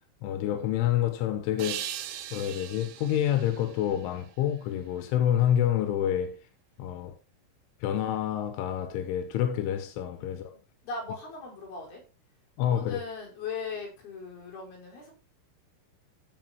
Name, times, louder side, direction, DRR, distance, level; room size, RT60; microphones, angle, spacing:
voice 1, 0.2-1.9 2.3-6.4 6.8-7.2 7.8-10.5 12.6-13.0, left 10 dB, 90° left, 3.7 m, -28 dB
sound 1, 1.6-4.7, right 11 dB, 85° right, 3.6 m, -40 dB
voice 2, 10.8-12.0 12.6-15.1, left 4 dB, 55° left, 7.2 m, -39 dB
15.5 x 6.2 x 4.4 m
omnidirectional pair, 5.4 m